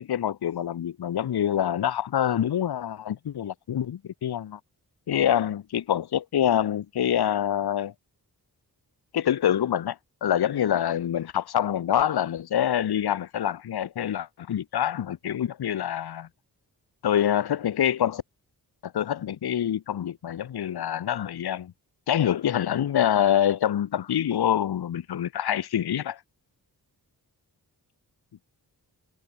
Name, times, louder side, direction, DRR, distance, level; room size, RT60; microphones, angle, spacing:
voice 1, 0.0-4.6 5.1-7.9 9.1-16.3 17.0-18.2 18.8-21.7 22.1-26.2, left 10 dB, 70° left, 0.8 m, -26 dB
cardioid pair, 55°, 40 cm